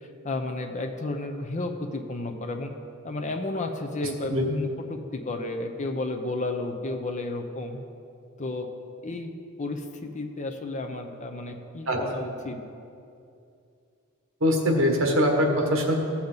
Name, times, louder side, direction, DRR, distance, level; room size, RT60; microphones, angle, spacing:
voice 1, 0.2-2.7 3.0-7.8 8.4-8.7 9.0-12.6, left 2 dB, 35° left, 5 dB, 0.7 m, -32 dB
voice 2, 14.4-15.9, equal, 70° right, 1 dB, 1.5 m, -22 dB
15.5 x 7.2 x 4.0 m, 2.5 s
head